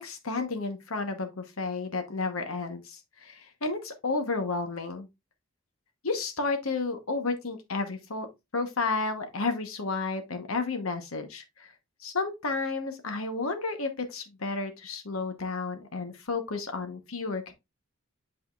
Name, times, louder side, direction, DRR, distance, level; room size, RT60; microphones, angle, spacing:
voice 1, 0.0-5.1 6.0-8.3 8.5-11.7 12.0-17.5, left 3 dB, 80° left, 1.1 m, -32 dB
8.3 x 4.9 x 2.4 m
head